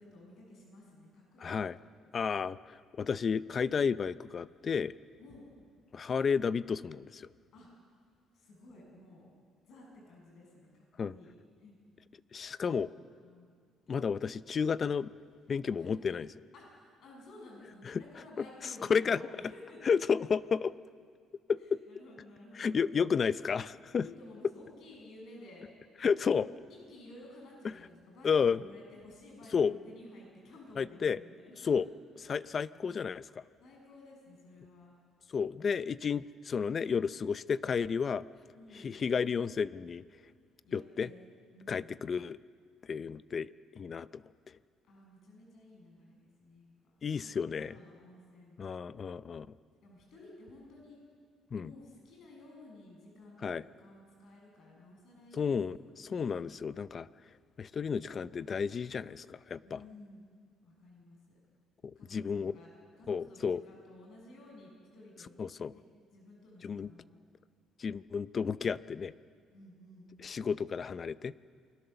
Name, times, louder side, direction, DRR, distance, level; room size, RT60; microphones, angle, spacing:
voice 1, 0.0-1.9 5.2-5.5 7.5-7.7 8.3-9.3 9.6-11.8 12.6-13.5 15.8-16.0 16.5-20.0 21.6-22.8 24.0-25.7 26.3-31.7 33.6-34.9 38.5-39.0 40.6-41.3 41.5-41.9 44.9-46.7 47.1-48.6 49.8-51.0 51.6-55.6 56.0-56.5 59.6-60.3 60.6-61.4 62.0-62.7 63.0-65.4 65.7-65.8 66.1-67.2 69.5-70.1, left 1 dB, 60° left, -1 dB, 7.5 m, -54 dB
voice 2, 1.4-1.8 2.1-4.9 5.9-7.3 11.0-11.1 12.3-12.9 13.9-15.1 15.5-16.3 17.8-18.0 18.4-18.5 18.9-19.2 19.8-20.7 21.5-21.8 22.5-24.1 26.0-26.5 28.2-28.7 29.5-29.8 30.8-31.2 31.6-31.9 32.3-33.4 35.3-38.2 38.7-40.0 40.7-41.1 41.7-42.4 42.9-44.6 47.0-47.7 48.6-49.5 51.5-51.7 53.4-53.6 55.3-57.1 57.6-59.8 61.8-62.6 63.1-63.6 65.4-65.7 66.6-66.9 67.8-69.1 70.2-71.3, left 6 dB, 35° left, 16 dB, 0.5 m, -32 dB
28.5 x 20.5 x 6.9 m, 2.1 s
cardioid pair, 130°, 0 cm